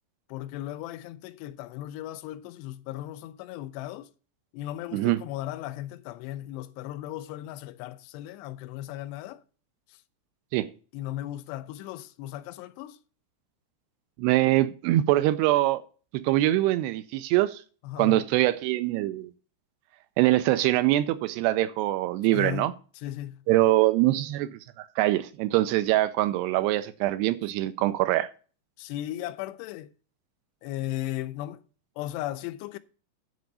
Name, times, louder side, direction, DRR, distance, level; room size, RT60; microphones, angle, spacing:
voice 1, 0.3-4.1 4.5-9.4 9.9-10.0 10.9-13.0 17.8-18.2 22.3-23.4 28.8-29.9 30.6-31.6 32.0-32.8, left 14 dB, 85° left, 2.6 m, -36 dB
voice 2, 14.2-15.8 16.1-17.6 18.0-19.3 20.2-22.7 23.5-28.3, right 16 dB, 80° right, 2.5 m, -23 dB
9.5 x 5.0 x 6.9 m
omnidirectional pair, 5.0 m